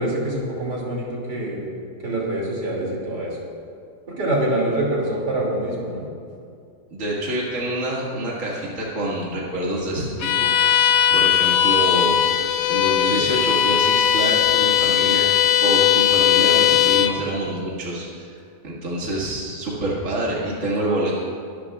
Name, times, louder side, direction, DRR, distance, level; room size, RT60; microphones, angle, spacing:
voice 1, 0.0-1.7 2.0-3.4 4.1-6.1, right 1 dB, 75° right, -4 dB, 3.3 m, -25 dB
voice 2, 6.9-10.8 11.1-12.4 12.7-15.3 15.6-21.2, right 1 dB, 50° right, -5 dB, 2.3 m, -26 dB
Bowed string instrument, 10.2-17.2, left 10 dB, 80° left, 1.2 m, -18 dB
22.5 x 12.5 x 2.4 m, 2.4 s
omnidirectional pair, 1.8 m